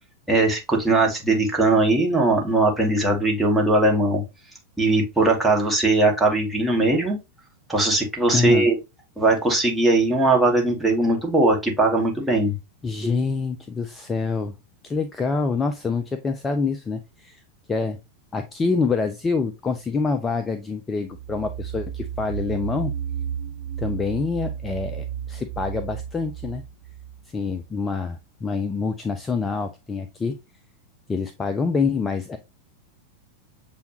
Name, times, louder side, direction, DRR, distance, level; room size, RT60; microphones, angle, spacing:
voice 1, 0.3-4.2 4.8-7.2 7.7-8.7 9.2-12.6, right 2 dB, 5° right, -1 dB, 1.1 m, -20 dB
voice 2, 8.3-8.7 12.8-14.6 14.8-17.4 17.7-18.0 18.3-22.9 23.8-26.6 27.3-30.3 31.1-32.4, left 4 dB, 15° left, 8 dB, 0.4 m, -26 dB
sound 1, 21.1-27.7, right 9 dB, 60° right, 1.0 m, -33 dB
6.8 x 2.3 x 2.8 m, 0.24 s
figure-of-eight pair, 90°, 0 cm